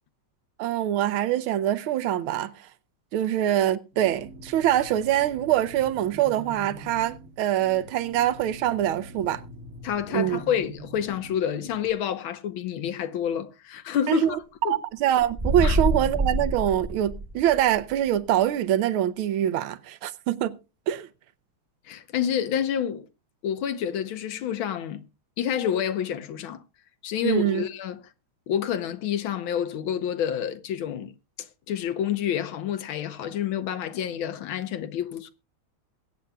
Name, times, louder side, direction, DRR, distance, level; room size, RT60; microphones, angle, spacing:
voice 1, 0.6-2.7 3.1-9.4 10.1-10.4 14.1-20.6 20.9-21.1 27.2-27.6, right 12 dB, 75° right, 1.5 m, -24 dB
sound 1, 3.9-11.9, right 1 dB, 45° right, 1.3 m, -44 dB
voice 2, 9.8-14.8 15.6-15.8 21.9-23.1 23.4-25.0 25.4-26.6 27.0-28.0 28.5-35.3, left 9 dB, 70° left, 1.6 m, -28 dB
sound 2, 15.2-17.7, right 1 dB, 15° right, 1.2 m, -26 dB
22.0 x 8.8 x 2.3 m
omnidirectional pair, 2.4 m